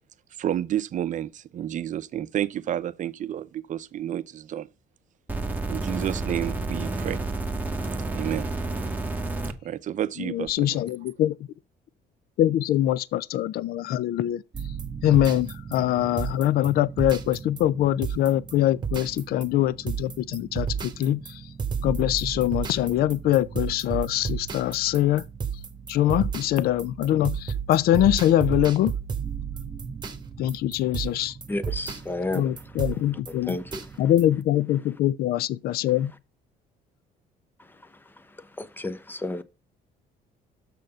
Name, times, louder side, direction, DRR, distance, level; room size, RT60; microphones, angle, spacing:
voice 1, 0.4-4.7 5.7-7.2 8.1-8.5 9.6-10.8, right 11 dB, 50° right, 0.6 m, -30 dB
sound 1, 5.3-9.5 10.5-10.6, right 2 dB, 10° right, 1.2 m, -30 dB
voice 2, 10.3-11.3 12.4-14.4 15.0-21.2 21.8-25.2 25.9-28.9 30.4-31.3 32.3-33.6 34.0-36.1, left 13 dB, 65° left, 0.5 m, -23 dB
sound 2, 14.5-34.4, right 6 dB, 25° right, 1.4 m, -34 dB
voice 3, 31.5-32.5 32.9-33.9 38.6-39.4, left 2 dB, 10° left, 0.8 m, -32 dB
6.7 x 6.5 x 5.5 m
cardioid pair, 110°, 17 cm